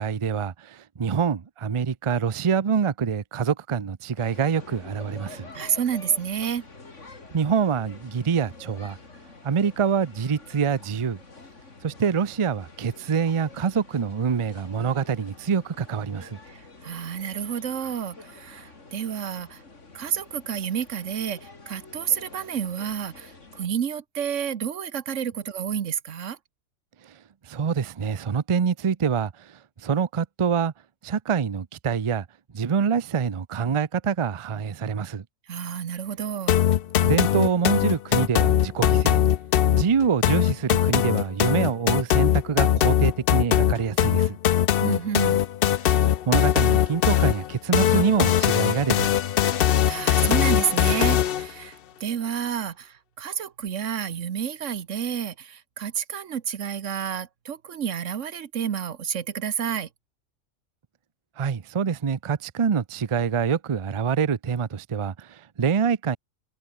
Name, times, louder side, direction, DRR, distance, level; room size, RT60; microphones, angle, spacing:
voice 1, 0.0-5.5 7.3-9.0 9.4-11.2 11.8-16.4 27.5-29.5 29.8-30.7 31.0-32.2 32.5-35.2 37.0-39.2 39.7-44.4 45.9-49.1 61.4-66.2, right 6 dB, 35° right, 0.5 m, -25 dB
sound 1, 4.2-23.7, left 3 dB, 75° left, 3.6 m, -47 dB
voice 2, 5.5-6.6 16.5-19.6 19.9-26.4 35.5-36.5 44.8-45.4 49.4-59.9, right 8 dB, 80° right, 1.4 m, -30 dB
sound 2, 36.5-51.5, left 10 dB, 55° left, 0.7 m, -21 dB
omnidirectional pair, 1.3 m